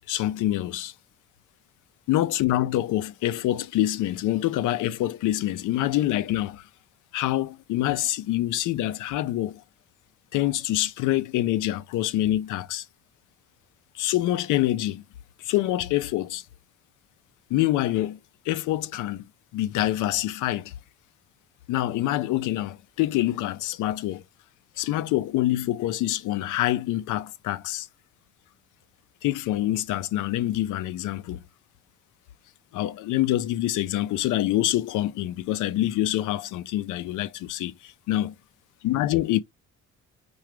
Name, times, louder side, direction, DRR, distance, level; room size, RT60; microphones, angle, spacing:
voice 1, 0.1-0.9 2.1-6.7 7.1-9.6 10.3-12.9 13.9-15.0 15.4-16.4 17.5-18.2 18.5-19.3 19.5-20.7 21.7-24.2 24.8-27.9 29.2-31.4 32.7-38.3 38.8-39.4, left 14 dB, 80° left, 0.5 m, -26 dB
4.8 x 2.3 x 3.0 m
cardioid pair, 90°, 30 cm